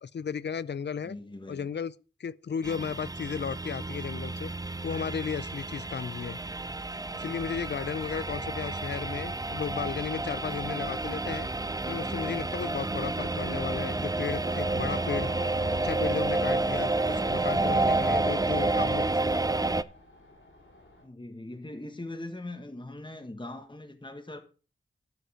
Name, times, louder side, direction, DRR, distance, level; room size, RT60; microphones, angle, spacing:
voice 1, 0.0-1.2 1.5-4.5 4.8-6.4 7.2-11.5 11.9-15.3 15.7-19.6, left 7 dB, 55° left, 0.5 m, -34 dB
voice 2, 1.0-1.7 21.0-24.4, left 1 dB, 25° left, 1.4 m, -41 dB
sound 1, 2.6-19.8, right 2 dB, 15° right, 0.5 m, -30 dB
sound 2, 6.8-21.1, left 1 dB, 75° left, 4.4 m, -57 dB
Wind instrument woodwind instrument, 14.4-19.0, right 2 dB, 60° right, 0.8 m, -44 dB
13.0 x 5.3 x 5.0 m
wide cardioid pair, 50°, 21 cm